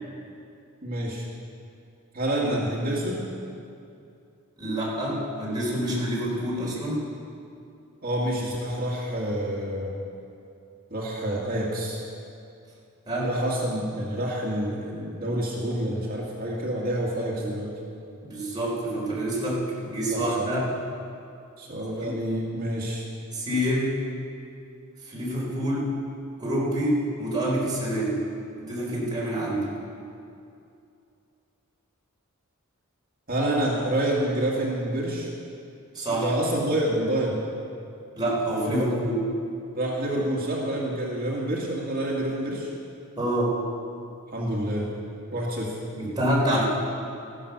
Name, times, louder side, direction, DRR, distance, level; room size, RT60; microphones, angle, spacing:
voice 1, 0.8-1.3 2.1-3.2 8.0-9.9 10.9-12.0 13.2-17.7 20.1-20.5 21.6-23.0 33.3-35.3 36.2-37.4 38.6-38.9 39.7-42.7 44.3-44.9 45.3-45.8, right 1 dB, 45° right, -4 dB, 2.1 m, -28 dB
voice 2, 4.6-7.0 13.1-13.3 17.4-17.5 18.2-20.6 22.0-22.1 23.3-24.0 25.0-25.9 26.4-28.2 28.6-29.7 35.9-36.3 38.2-39.2 43.2-43.6 45.9-46.7, right 1 dB, 20° right, -5 dB, 4.1 m, -27 dB
14.5 x 11.5 x 6.8 m, 2.6 s
head